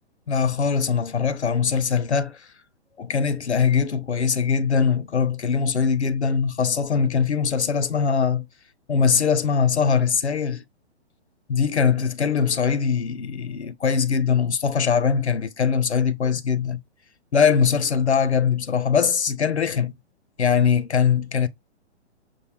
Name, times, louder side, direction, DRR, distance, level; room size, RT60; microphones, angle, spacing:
voice 1, 0.3-2.4 3.0-8.4 8.9-10.6 11.5-16.8 17.3-19.9 20.4-21.5, left 6 dB, 75° left, 0.7 m, -21 dB
5.6 x 2.6 x 3.2 m
figure-of-eight pair, 120°, 34 cm